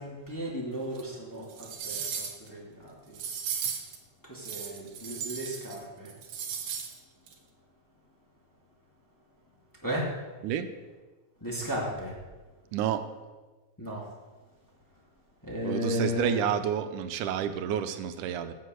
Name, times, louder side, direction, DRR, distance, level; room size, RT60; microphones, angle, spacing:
voice 1, 0.0-3.2 4.2-6.1 9.8-10.1 11.4-12.1 13.8-14.1 15.4-16.4, equal, 5° left, -4 dB, 1.8 m, -35 dB
sound 1, 1.0-1.1 1.5-2.5 3.1-4.0 4.4-5.8 6.1-6.9 7.3-7.4, right 7 dB, 65° right, 2.1 m, -36 dB
voice 2, 12.7-13.0 15.6-18.5, right 9 dB, 90° right, 10 dB, 2.2 m, -29 dB
11.5 x 6.6 x 7.7 m, 1.3 s
omnidirectional pair, 3.5 m